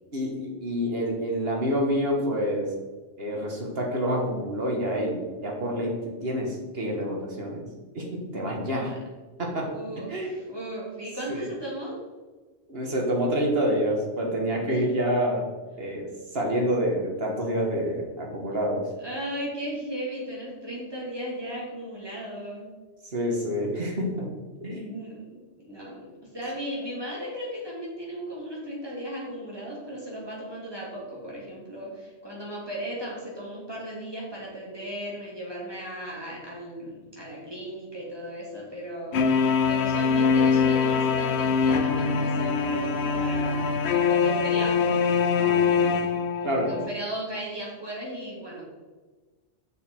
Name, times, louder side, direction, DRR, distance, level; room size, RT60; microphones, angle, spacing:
voice 1, 0.1-2.7 3.2-7.6 8.0-8.9 9.4-9.7 10.1-10.4 11.3-11.5 12.7-15.5 15.8-16.1 16.3-18.8 23.1-24.3 24.6-24.9 45.3-46.0 46.4-46.7, equal, 55° right, 0 dB, 1.7 m, -27 dB
voice 2, 8.5-9.0 9.7-12.0 14.6-14.8 19.0-22.7 24.7-39.2 39.7-45.0 46.4-48.6, right 1 dB, 20° right, -5 dB, 2.7 m, -36 dB
sound 1, 39.1-46.9, left 5 dB, 65° left, 0.8 m, -23 dB
6.7 x 6.6 x 4.6 m, 1.3 s
omnidirectional pair, 1.3 m